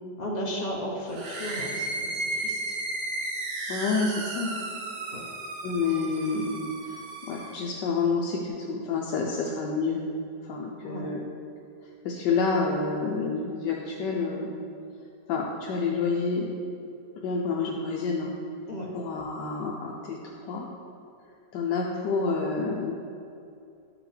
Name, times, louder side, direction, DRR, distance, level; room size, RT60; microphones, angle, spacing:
voice 1, 0.2-2.8 5.1-5.2 10.8-11.1 18.7-18.9, equal, 35° left, -3 dB, 0.7 m, -34 dB
sound 1, 1.1-7.6, right 2 dB, 50° right, 0.7 m, -34 dB
voice 2, 3.7-4.5 5.6-7.0 7.3-10.0 10.4-11.2 12.0-14.6 15.3-16.5 17.2-18.3 18.9-20.2 20.4-20.7 21.5-22.9, left 4 dB, 80° left, -1 dB, 1.2 m, -28 dB
9.5 x 5.0 x 3.2 m, 2.6 s
omnidirectional pair, 1.9 m